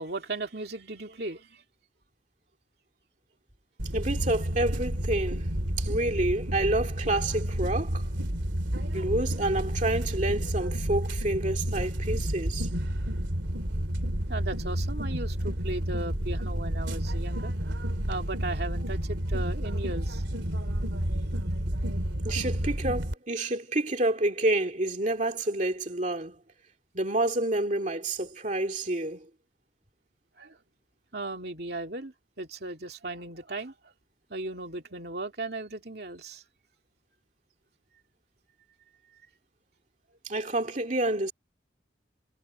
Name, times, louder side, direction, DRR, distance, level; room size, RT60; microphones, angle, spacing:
voice 1, 0.0-1.6 14.3-17.5 18.1-20.2 30.4-30.6 31.1-33.7 34.3-36.4, right 2 dB, 55° right, 2.8 m, -36 dB
sound 1, 3.8-23.1, equal, 75° right, 2.8 m, -30 dB
voice 2, 3.9-5.5 5.8-8.1 8.8-12.7 22.2-26.4 26.9-29.3 40.2-41.3, right 2 dB, 40° right, 2.4 m, -28 dB
head